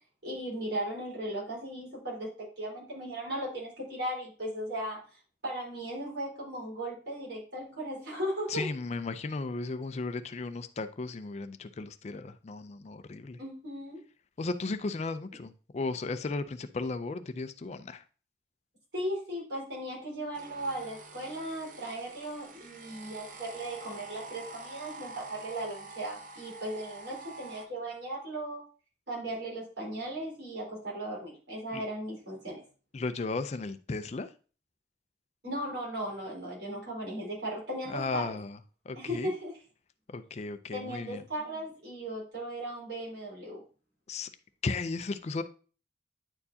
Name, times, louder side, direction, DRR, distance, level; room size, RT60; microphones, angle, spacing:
voice 1, 0.2-8.7 13.4-14.0 18.9-28.6 29.1-32.6 35.4-38.4 39.0-39.5 40.7-43.6, right 1 dB, 70° right, -5 dB, 4.1 m, -37 dB
voice 2, 8.5-13.4 14.4-18.0 31.7-31.8 32.9-34.3 37.9-38.6 38.9-39.3 40.1-41.2 44.1-44.3 44.6-45.4, left 3 dB, 35° left, 11 dB, 0.4 m, -35 dB
sound 1, 20.3-27.7, right 3 dB, 45° right, 0.8 m, -47 dB
9.6 x 4.6 x 2.7 m, 0.37 s
head